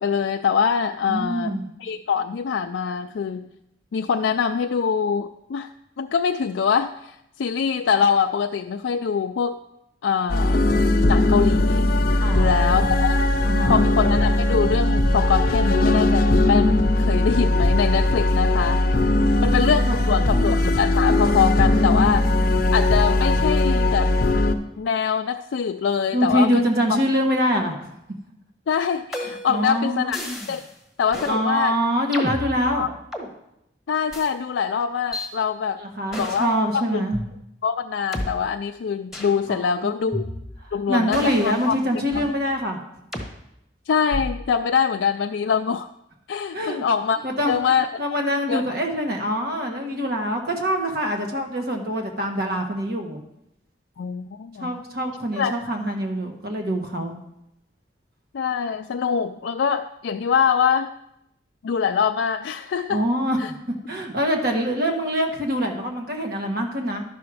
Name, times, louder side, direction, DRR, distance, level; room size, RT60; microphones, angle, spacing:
voice 1, 0.0-1.5 1.8-3.5 3.9-5.7 6.0-9.6 10.0-10.6 11.1-11.9 12.4-13.2 13.7-18.8 19.4-22.3 22.7-24.2 24.8-26.6 28.7-30.2 30.5-30.6 31.0-31.7 32.7-32.9 33.9-35.8 36.2-37.0 37.6-40.3 40.7-41.8 43.9-45.9 46.3-47.2 47.5-47.9 48.5-48.6 54.0-54.7 55.4-55.5 58.3-60.9 61.6-63.0 63.4-63.5, left 6 dB, 75° left, 6 dB, 0.4 m, -23 dB
voice 2, 1.1-1.6 12.2-12.9 13.4-13.8 19.1-20.6 26.1-27.7 29.5-30.1 31.3-32.9 35.8-37.2 39.5-39.7 40.1-40.2 40.9-42.8 46.5-46.8 47.2-53.2 54.6-57.1 62.9-67.0, equal, 55° right, 3 dB, 1.3 m, -25 dB
sound 1, 10.3-24.5, left 1 dB, 50° left, 0.7 m, -19 dB
sound 2, 29.1-29.6 30.1-30.7 31.1-31.4 32.1-33.3 34.1-34.3 35.1-35.3 36.1-36.5 37.1-37.2 38.1-38.3 39.1-39.4 40.1-40.7 41.1-42.4 43.1-43.3 44.1-44.5, left 1 dB, ahead, 1.1 m, -32 dB
11.5 x 6.1 x 4.8 m, 0.83 s
head